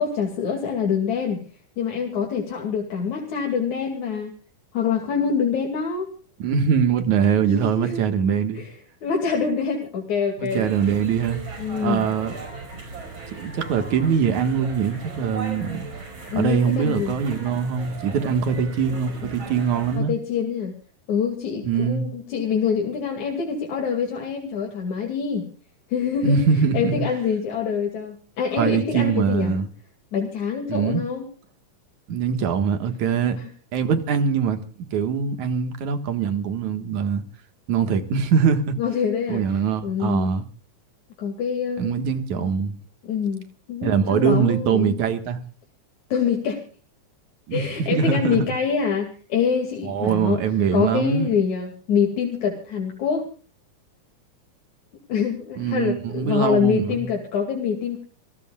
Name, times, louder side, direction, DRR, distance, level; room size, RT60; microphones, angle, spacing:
voice 1, 0.0-1.4 1.8-4.3 4.7-6.1 7.4-8.0 8.5-8.7 9.0-10.7 11.6-12.1 16.3-17.2 20.0-20.8 21.1-25.5 25.9-26.4 26.7-29.5 30.1-31.3 33.4-33.5 38.8-40.3 41.2-42.0 42.4-42.5 43.0-45.0 46.1-46.6 47.5-50.4 50.7-53.2 55.1-58.0, left 6 dB, 70° left, 3.8 m, -25 dB
voice 2, 6.4-8.6 10.4-11.4 11.8-12.4 13.3-15.9 16.3-20.1 21.6-22.0 26.2-26.9 28.6-29.7 30.7-31.0 32.1-33.4 33.7-34.6 34.9-37.2 37.7-38.8 39.3-40.5 41.8-42.8 43.8-45.4 47.5-47.6 47.9-48.5 49.8-51.3 55.6-57.1, right 6 dB, 75° right, 3.0 m, -22 dB
sound 1, 10.5-20.0, right 3 dB, 50° right, 6.1 m, -37 dB
28.0 x 16.5 x 2.4 m
omnidirectional pair, 3.5 m